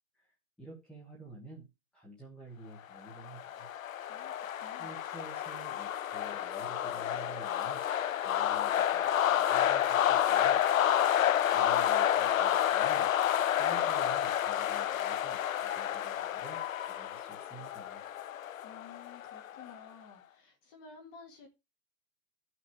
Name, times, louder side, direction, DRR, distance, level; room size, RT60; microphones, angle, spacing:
voice 1, 0.1-1.7 1.9-3.7 4.8-7.8 8.2-10.6 11.5-13.1 13.6-16.6 16.9-18.1, right 2 dB, ahead, 1.3 m, -50 dB
sound 1, 3.1-19.7, left 10 dB, 70° left, 0.7 m, -30 dB
voice 2, 4.1-4.9 18.6-21.5, left 5 dB, 20° left, 1.8 m, -53 dB
13.5 x 6.1 x 4.6 m
hypercardioid pair, 170°, 42 cm